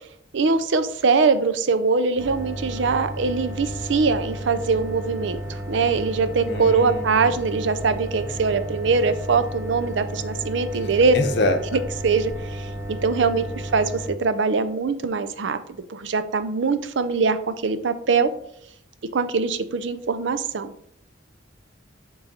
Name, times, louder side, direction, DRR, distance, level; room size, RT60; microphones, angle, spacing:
voice 1, 0.3-11.1 12.0-13.9 14.2-15.6 15.9-18.3 19.1-20.7, right 4 dB, 70° right, 11 dB, 0.5 m, -22 dB
sound 1, 2.2-14.1, equal, 15° right, 0.9 m, -33 dB
voice 2, 6.4-7.3 11.1-11.8, left 1 dB, 60° left, 5 dB, 0.9 m, -25 dB
7.0 x 3.9 x 4.1 m, 0.70 s
head